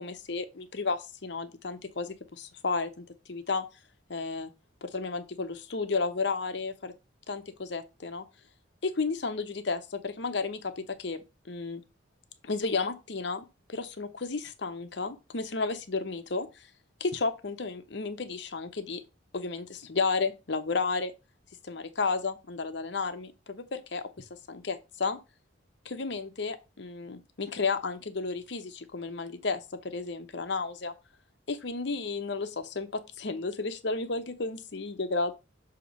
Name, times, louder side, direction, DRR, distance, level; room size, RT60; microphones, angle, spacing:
voice 1, 0.0-3.6 4.1-4.5 4.8-6.9 7.3-8.2 8.8-11.2 11.5-11.8 12.4-16.7 17.0-19.0 19.3-21.1 21.6-25.2 25.8-30.9 31.5-35.3, left 4 dB, 60° left, 0.8 m, -32 dB
6.6 x 2.9 x 5.1 m
head